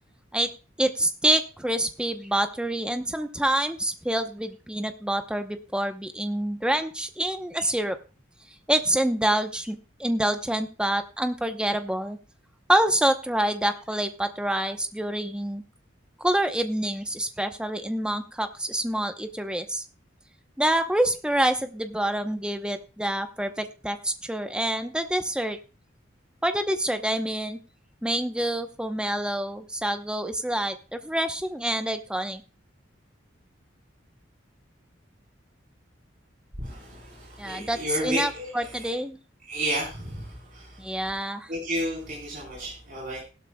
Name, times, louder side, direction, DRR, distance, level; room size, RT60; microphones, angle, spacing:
voice 1, 0.8-8.0 8.7-12.2 12.7-15.6 16.2-19.8 20.6-25.6 26.4-27.6 28.0-32.4 37.4-39.2 40.8-41.5, right 1 dB, 5° right, 7 dB, 0.8 m, -27 dB
voice 2, 36.6-38.9 39.5-40.8 41.5-43.2, equal, 45° right, -4 dB, 4.0 m, -32 dB
16.5 x 12.0 x 2.3 m, 0.33 s
head